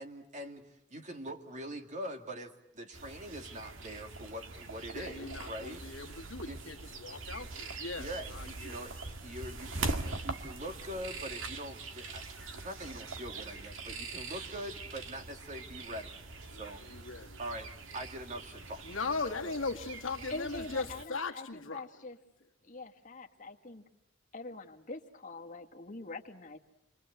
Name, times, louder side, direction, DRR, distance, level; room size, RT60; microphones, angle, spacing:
voice 1, 0.0-5.8 6.4-6.6 8.0-8.9 9.2-12.2 12.5-16.2 16.5-16.9 17.4-19.0 19.2-19.6, equal, 35° right, 5 dB, 2.2 m, -43 dB
sound 1, 2.9-21.0, right 3 dB, 75° right, 2.0 m, -43 dB
voice 2, 4.9-8.9 16.5-17.4 18.8-21.9, left 4 dB, 85° left, 3 dB, 2.1 m, -39 dB
voice 3, 20.3-22.2 22.7-23.8 24.3-26.6, left 2 dB, 40° left, 2 dB, 1.9 m, -44 dB
28.5 x 23.5 x 8.1 m, 0.83 s
head